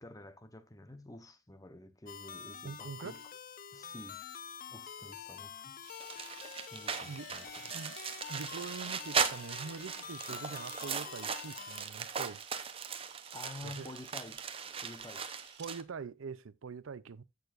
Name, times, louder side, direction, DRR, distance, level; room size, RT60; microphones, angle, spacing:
voice 1, 0.0-3.2 3.7-4.2 4.7-5.8 6.7-7.8 10.3-10.4 13.3-14.4 14.8-15.3, left 1 dB, 20° left, 0.9 m, -50 dB
sound 1, 2.1-11.9, left 8 dB, 45° left, 0.6 m, -47 dB
voice 2, 2.6-3.2 6.2-6.3 7.0-7.3 7.7-8.0 8.3-12.4 13.6-13.9 15.6-17.2, right 5 dB, 85° right, 0.5 m, -44 dB
Camera, 5.8-15.7, right 8 dB, 55° right, 1.9 m, -56 dB
sound 2, 6.0-15.8, right 6 dB, 30° right, 0.8 m, -38 dB
14.5 x 6.6 x 2.5 m
head